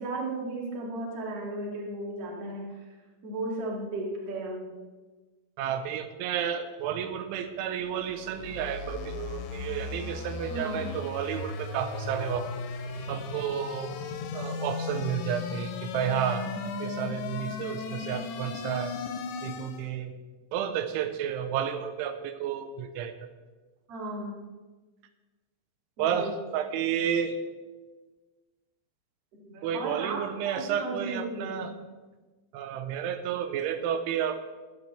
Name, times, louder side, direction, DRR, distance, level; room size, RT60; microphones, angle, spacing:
voice 1, 0.0-2.6 3.2-4.7 10.5-11.0 23.9-24.4 26.0-26.3 29.3-31.7, right 2 dB, 40° right, -3 dB, 2.4 m, -35 dB
voice 2, 5.6-12.5 13.1-13.9 14.3-16.5 16.8-19.0 19.4-20.1 20.5-23.3 26.0-27.4 29.6-31.7 32.5-34.4, right 8 dB, 85° right, 9 dB, 3.2 m, -31 dB
sound 1, 7.7-19.9, left 4 dB, 75° left, 2.9 m, -36 dB
23.0 x 8.1 x 3.3 m, 1.3 s
omnidirectional pair, 5.4 m